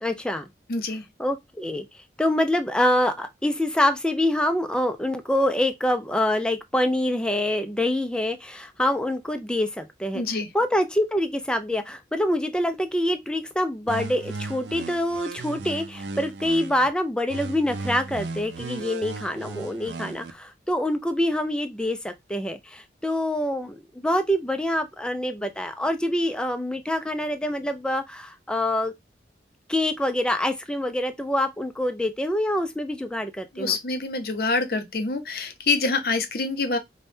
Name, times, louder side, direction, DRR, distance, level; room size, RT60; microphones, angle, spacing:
voice 1, 0.0-0.5 1.2-1.8 2.2-10.2 10.5-28.9 29.7-33.8, left 1 dB, 5° left, 0.3 m, -25 dB
voice 2, 0.7-1.0 10.1-10.5 33.5-36.8, left 3 dB, 55° left, 0.6 m, -26 dB
sound 1, 13.9-16.9 17.3-20.3, right 3 dB, 80° right, 0.5 m, -36 dB
5.1 x 2.2 x 2.6 m
head